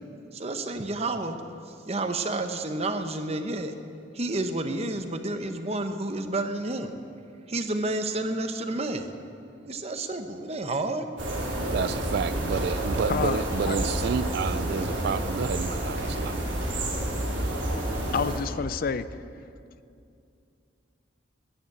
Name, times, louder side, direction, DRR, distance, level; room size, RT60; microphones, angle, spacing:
voice 1, 0.3-1.4 1.7-3.8 4.1-6.9 7.5-9.1 9.6-11.1, right 2 dB, 35° right, 7 dB, 0.8 m, -30 dB
sound 1, 11.2-18.4, right 1 dB, 75° right, 3.2 m, -29 dB
voice 2, 11.7-16.5, right 6 dB, 55° right, 15 dB, 0.3 m, -30 dB
voice 3, 13.1-13.8 17.8-17.9 18.1-19.1, left 5 dB, 50° left, 14 dB, 0.4 m, -29 dB
11.5 x 11.0 x 8.6 m, 2.5 s
head